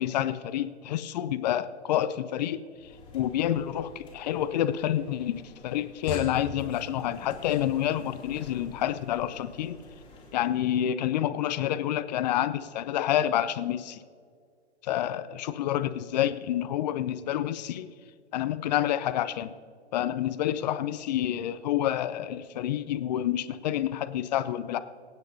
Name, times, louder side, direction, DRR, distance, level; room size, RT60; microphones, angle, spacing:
voice 1, 0.0-5.3 5.6-9.8 10.3-14.0 14.8-17.9 18.3-19.5 19.9-24.8, left 11 dB, 40° left, 13 dB, 0.5 m, -28 dB
sound 1, 2.8-10.6, left 2 dB, 15° left, 2.7 m, -45 dB
24.0 x 9.0 x 2.7 m, 2.1 s
hypercardioid pair, 120°, 34 cm